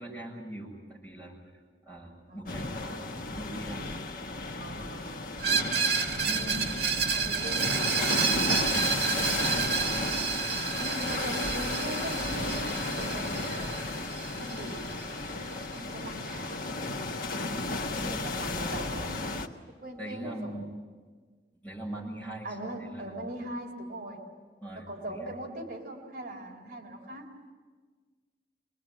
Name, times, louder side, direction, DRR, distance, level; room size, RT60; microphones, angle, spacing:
voice 1, 0.0-1.3 1.9-3.9 7.6-7.7 8.6-9.7 11.3-11.4 20.0-20.7 21.6-23.1 24.6-25.3, right 1 dB, 10° left, -5 dB, 7.3 m, -42 dB
voice 2, 2.3-2.6 4.6-5.2 6.2-7.7 10.8-15.3 15.7-16.9 17.3-19.4 19.8-20.6 22.4-24.2 24.7-27.3, right 1 dB, 50° right, -1 dB, 4.0 m, -40 dB
sound 1, 2.5-19.5, left 3 dB, 50° left, 1.4 m, -33 dB
Screech, 5.4-15.0, right 6 dB, 80° right, 1.7 m, -30 dB
25.5 x 20.5 x 9.0 m, 1.5 s
head